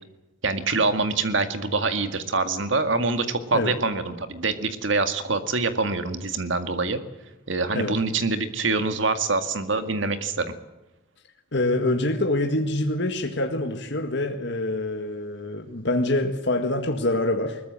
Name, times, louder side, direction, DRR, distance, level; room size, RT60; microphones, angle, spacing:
voice 1, 0.4-7.0 7.5-10.5, right 3 dB, 65° right, 9 dB, 2.0 m, -25 dB
voice 2, 11.5-17.6, left 2 dB, 60° left, 4 dB, 1.9 m, -25 dB
22.0 x 20.0 x 7.7 m, 1.0 s
head